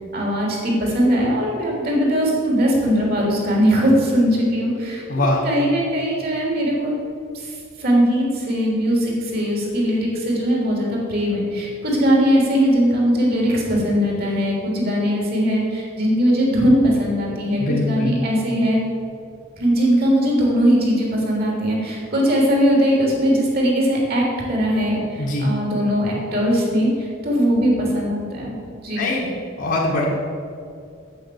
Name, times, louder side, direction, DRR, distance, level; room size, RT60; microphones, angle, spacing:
voice 1, 0.1-5.0 5.4-7.0 7.3-18.8 19.6-28.5 28.8-29.0, equal, 50° right, -2 dB, 3.3 m, -20 dB
voice 2, 5.1-5.4 17.6-18.1 25.2-25.5 28.9-29.3 29.6-30.0, left 2 dB, 50° left, -5 dB, 1.7 m, -22 dB
8.6 x 8.4 x 7.9 m, 2.4 s
head